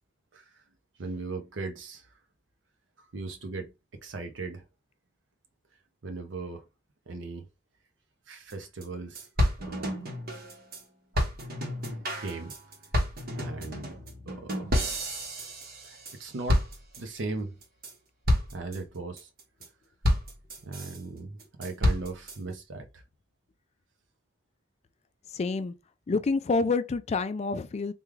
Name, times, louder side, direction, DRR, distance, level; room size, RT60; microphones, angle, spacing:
voice 1, 0.3-0.6 1.0-2.1 3.1-4.6 6.0-6.7 7.1-7.5 8.3-9.3 9.6-10.0 12.2-12.5 13.3-14.0 14.3-14.8 15.8-16.6 17.0-17.6 18.5-19.3 20.6-23.0, right 3 dB, 70° right, 0.6 m, -38 dB
sound 1, 8.5-8.6 8.8-8.9 9.1-10.8 11.1-16.2 16.5-17.2 17.6-17.9 18.3-18.8 19.2-19.7 20.0-21.0 21.4-22.4, equal, 50° right, 0.9 m, -29 dB
voice 2, 25.3-25.7 26.1-27.9, left 3 dB, 35° left, 0.3 m, -28 dB
3.5 x 2.2 x 3.1 m
head